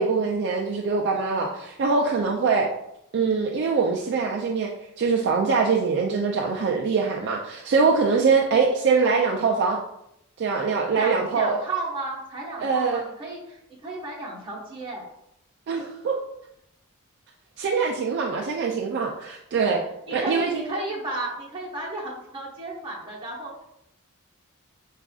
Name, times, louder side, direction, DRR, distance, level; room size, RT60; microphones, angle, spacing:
voice 1, 0.0-2.7 3.1-4.7 5.0-9.8 10.4-11.6 12.6-13.0 15.7-16.2 17.6-19.8 20.1-20.6, right 4 dB, 55° right, 0 dB, 0.3 m, -23 dB
voice 2, 10.9-15.0 20.1-23.5, right 2 dB, 25° right, -5 dB, 1.0 m, -33 dB
4.7 x 2.4 x 2.3 m, 0.80 s
head